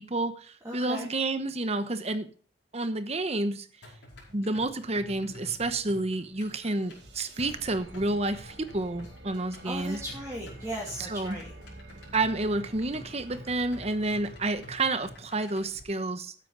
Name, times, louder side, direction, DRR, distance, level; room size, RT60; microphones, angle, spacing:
voice 1, 0.0-2.3 2.7-3.7 4.3-10.0 11.1-11.4 12.1-16.3, right 2 dB, 35° right, 11 dB, 1.0 m, -30 dB
voice 2, 0.6-1.1 9.6-11.5, right 1 dB, 15° right, -5 dB, 2.8 m, -37 dB
sound 1, 3.8-15.8, left 1 dB, 75° left, 5.1 m, -50 dB
sound 2, 6.4-15.5, right 1 dB, 65° right, 2.0 m, -49 dB
13.0 x 9.0 x 4.0 m, 0.42 s
head